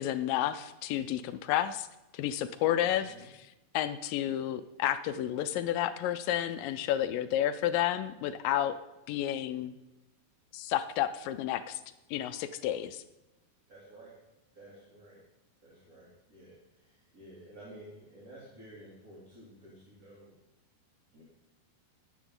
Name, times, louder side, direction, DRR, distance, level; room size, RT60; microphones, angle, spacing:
voice 1, 0.0-1.9 2.1-3.3 3.7-8.8 9.1-9.8 10.5-11.8 12.1-13.0, left 12 dB, 80° left, 11 dB, 2.1 m, -31 dB
voice 2, 2.8-3.3 13.7-14.2 14.5-15.2 15.6-20.4 21.1-21.2, right 1 dB, 25° right, -6 dB, 3.1 m, -52 dB
14.0 x 10.0 x 3.8 m, 0.98 s
omnidirectional pair, 4.4 m